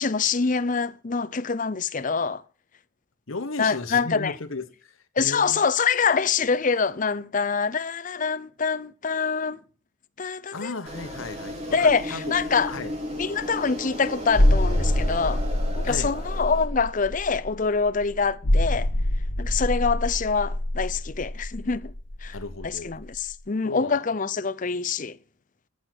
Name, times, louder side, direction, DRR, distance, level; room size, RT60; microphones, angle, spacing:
voice 1, 0.0-2.4 3.6-4.3 5.2-9.6 10.2-10.7 11.7-12.7 13.2-15.4 15.8-18.9 19.4-21.9 22.2-22.4 22.6-25.2, left 5 dB, 40° left, 0.6 m, -25 dB
voice 2, 3.3-5.6 10.5-12.4 12.7-12.9 15.8-16.1 22.3-23.0 23.6-24.0, left 3 dB, 80° left, 1.3 m, -35 dB
sound 1, 10.9-16.6, equal, 30° right, 2.4 m, -35 dB
sound 2, 14.3-22.7 23.0-23.2, left 1 dB, 55° left, 1.2 m, -25 dB
11.0 x 7.9 x 6.1 m
head